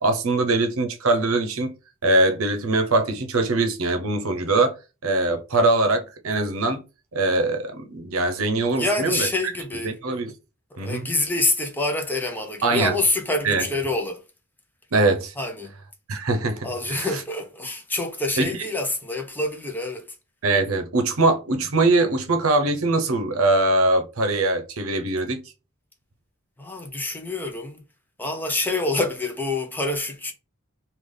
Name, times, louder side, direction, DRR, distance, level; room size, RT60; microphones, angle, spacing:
voice 1, 0.0-1.7 2.0-4.8 5.0-6.8 7.1-9.3 9.8-10.3 10.8-11.1 12.6-13.0 13.4-13.7 14.9-15.3 16.1-17.2 18.4-18.5 20.4-25.4, right 2 dB, 75° right, 0.7 m, -22 dB
voice 2, 8.8-10.0 10.8-14.2 15.4-15.7 16.6-20.1 26.6-27.8 28.2-30.3, left 2 dB, 10° left, 0.5 m, -26 dB
3.3 x 2.4 x 3.7 m
head